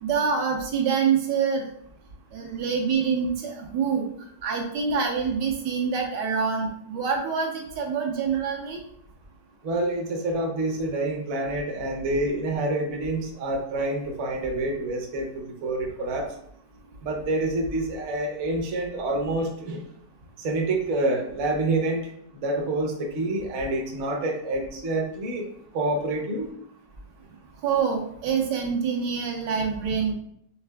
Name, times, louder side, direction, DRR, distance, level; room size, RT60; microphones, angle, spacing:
voice 1, 0.0-1.6 2.3-4.1 4.4-8.8 27.6-30.1, right 6 dB, 80° right, 1 dB, 1.4 m, -26 dB
voice 2, 9.6-16.3 17.0-19.8 20.4-22.0 22.3-25.5 25.7-26.5, right 2 dB, 55° right, 1 dB, 0.9 m, -27 dB
5.7 x 3.3 x 2.2 m, 0.69 s
omnidirectional pair, 1.9 m